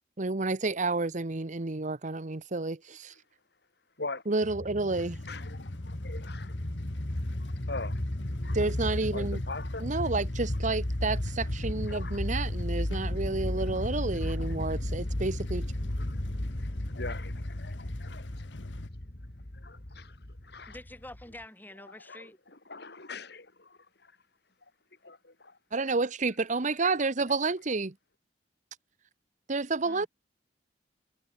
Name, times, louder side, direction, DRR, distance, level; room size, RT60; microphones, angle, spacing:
voice 1, 0.2-3.1 4.3-5.2 8.5-9.4 9.8-15.7 25.7-27.9 29.5-30.1, right 3 dB, 45° right, 1.1 m, -30 dB
sound 1, 4.4-21.4, left 1 dB, 45° left, 1.8 m, -34 dB
sound 2, 4.9-18.9, left 2 dB, 85° left, 1.0 m, -44 dB
voice 2, 5.0-6.8 7.3-8.0 8.4-9.9 11.9-12.2 13.6-13.9 14.1-14.6 16.0-16.2 16.6-18.5 19.5-20.8 21.9-24.3 24.6-24.7 25.0-25.6, left 3 dB, 65° left, 4.5 m, -44 dB
voice 3, 20.7-22.4 29.8-30.1, left 1 dB, 10° left, 6.6 m, -47 dB
head